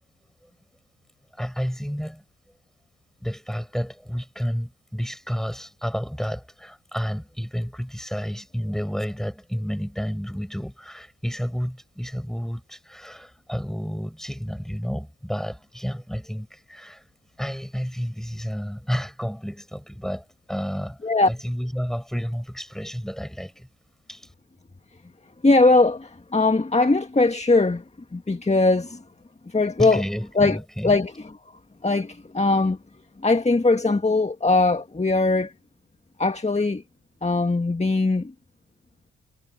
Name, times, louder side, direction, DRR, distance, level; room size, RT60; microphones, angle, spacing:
voice 1, 1.3-2.2 3.2-17.0 17.4-23.7 24.1-24.3 29.8-31.0, equal, ahead, 6.6 m, -31 dB
voice 2, 25.4-27.8 28.1-29.0 29.5-30.0 30.4-30.6 30.8-31.1 31.8-32.8 33.2-35.5 36.2-36.8 37.2-38.3, left 3 dB, 20° left, 1.9 m, -20 dB
hypercardioid pair, 40°, 34 cm